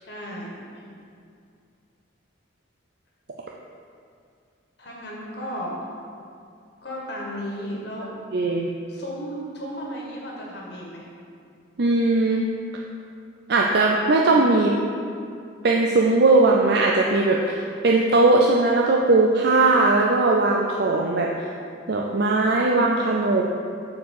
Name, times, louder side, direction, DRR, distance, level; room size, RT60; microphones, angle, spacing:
voice 1, 0.0-0.6 4.8-5.9 6.8-8.1 8.9-11.1, equal, 55° left, -3 dB, 1.6 m, -34 dB
voice 2, 8.3-8.7 11.8-12.5 13.5-14.7 15.6-21.3 21.9-23.4, right 2 dB, 55° right, -1 dB, 0.5 m, -19 dB
6.7 x 4.5 x 6.5 m, 2.4 s
head